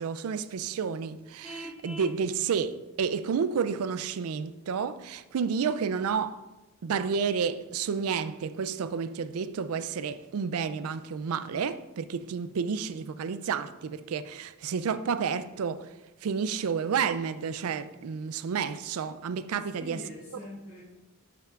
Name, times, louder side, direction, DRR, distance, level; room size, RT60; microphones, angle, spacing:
voice 1, 0.0-6.4 6.8-15.9 16.2-20.0, right 6 dB, 80° right, 0.4 m, -30 dB
Vehicle horn car horn honking, 1.4-2.2, equal, 5° right, 0.5 m, -41 dB
voice 2, 19.5-20.8, left 1 dB, 70° left, 2.0 m, -44 dB
8.7 x 5.7 x 2.4 m
head